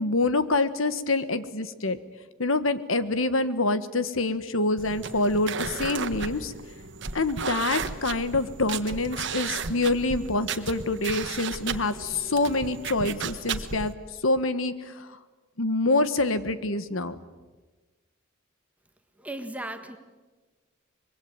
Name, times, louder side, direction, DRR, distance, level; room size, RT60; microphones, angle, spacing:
voice 1, 0.0-2.0 2.4-6.5 7.1-13.9 14.2-15.1 15.6-17.2, left 2 dB, 85° left, 12 dB, 1.4 m, -26 dB
sound 1, 4.8-13.9, right 5 dB, 65° right, 1.4 m, -34 dB
voice 2, 19.2-20.0, right 1 dB, 5° right, 6 dB, 1.6 m, -36 dB
25.5 x 22.5 x 9.1 m, 1.2 s
head